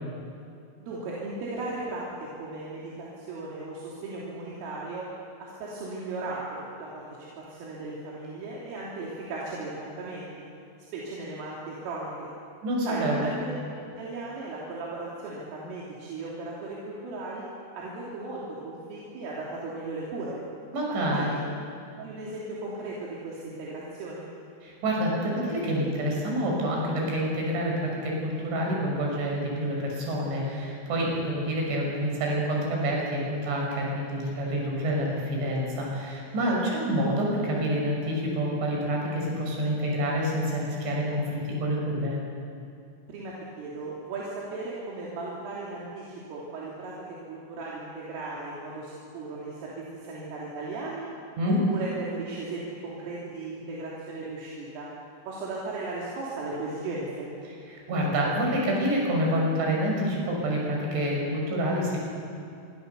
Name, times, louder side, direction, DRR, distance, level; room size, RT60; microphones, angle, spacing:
voice 1, 0.8-2.1 2.4-5.1 5.4-10.3 10.9-12.3 12.8-13.6 14.0-17.5 17.7-20.4 21.1-21.4 22.0-24.3 43.1-51.1 51.5-54.9 55.3-57.3, right 3 dB, 80° right, -5 dB, 5.7 m, -36 dB
voice 2, 12.6-13.3 20.7-21.3 24.6-42.2 51.4-51.6 57.7-62.0, equal, 65° right, -2 dB, 8.3 m, -27 dB
27.0 x 24.0 x 7.0 m, 2.6 s
omnidirectional pair, 5.8 m